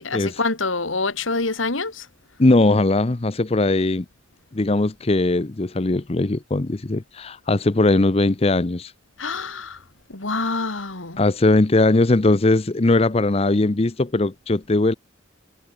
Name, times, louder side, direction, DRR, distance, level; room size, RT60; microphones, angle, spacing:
voice 1, 0.0-2.1 9.2-9.8 10.1-11.2, left 3 dB, 90° left, 2.7 m, -26 dB
voice 2, 2.4-4.0 4.5-8.9 11.2-14.9, left 2 dB, 30° left, 0.6 m, -19 dB
head